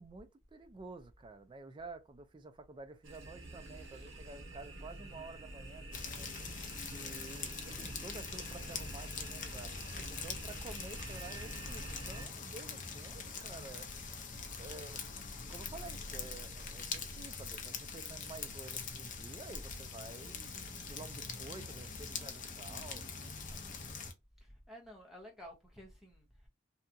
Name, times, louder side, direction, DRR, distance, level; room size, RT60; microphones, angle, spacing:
voice 1, 0.0-6.3 6.9-9.7 10.1-13.9 14.6-15.0 15.5-23.0 23.5-23.9, right 3 dB, 25° right, 0.3 m, -51 dB
sound 1, 3.0-12.3, right 2 dB, 80° right, 0.8 m, -48 dB
sound 2, 5.9-24.1, left 5 dB, 40° left, 0.5 m, -43 dB
voice 2, 9.9-10.3 10.6-10.8 13.4-13.5 14.6-14.7 24.4-26.5, equal, ahead, 0.7 m, -54 dB
2.8 x 2.2 x 2.5 m
head